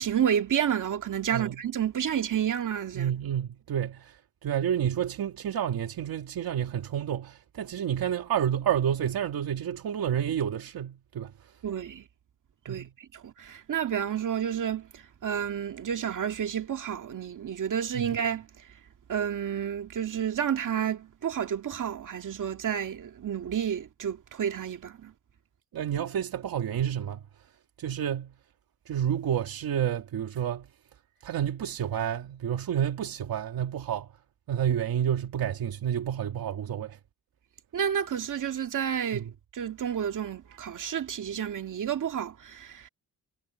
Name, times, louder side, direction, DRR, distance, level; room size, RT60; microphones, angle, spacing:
voice 1, 0.0-3.1 11.6-12.0 12.7-18.6 19.1-25.1 37.7-39.2 39.5-42.9, right 9 dB, 55° right, 2.1 m, -30 dB
voice 2, 2.9-11.5 12.7-12.9 25.7-27.2 27.8-28.3 28.9-30.7 31.2-34.1 34.5-37.0 39.1-39.3, right 9 dB, 75° right, 2.2 m, -30 dB
cardioid pair, 120°, 36 cm